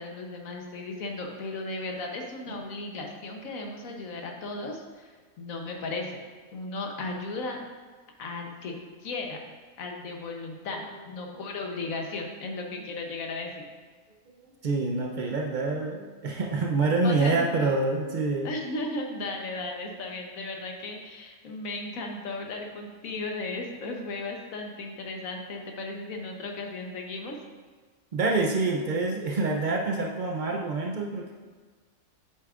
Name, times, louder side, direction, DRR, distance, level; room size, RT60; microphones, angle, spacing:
voice 1, 0.0-6.2 6.5-7.6 8.2-8.7 9.0-9.4 9.8-13.6 17.0-17.5 18.4-27.3, left 2 dB, 65° left, 2 dB, 1.3 m, -35 dB
voice 2, 14.6-18.5 28.1-31.3, right 3 dB, 85° right, 0 dB, 0.4 m, -27 dB
8.2 x 7.2 x 2.4 m, 1.5 s
omnidirectional pair, 1.6 m